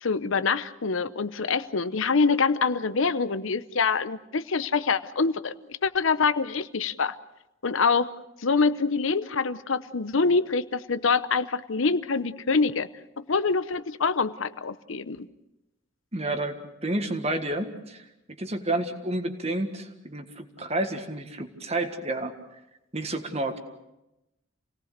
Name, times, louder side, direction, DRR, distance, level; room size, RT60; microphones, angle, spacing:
voice 1, 0.0-5.5 5.8-7.2 7.6-8.1 8.4-12.9 13.3-15.3, left 4 dB, 75° left, 14 dB, 0.8 m, -25 dB
voice 2, 16.1-18.0 18.4-22.3 22.9-23.6, right 2 dB, 30° right, 7 dB, 1.7 m, -30 dB
28.0 x 18.5 x 6.7 m, 0.93 s
head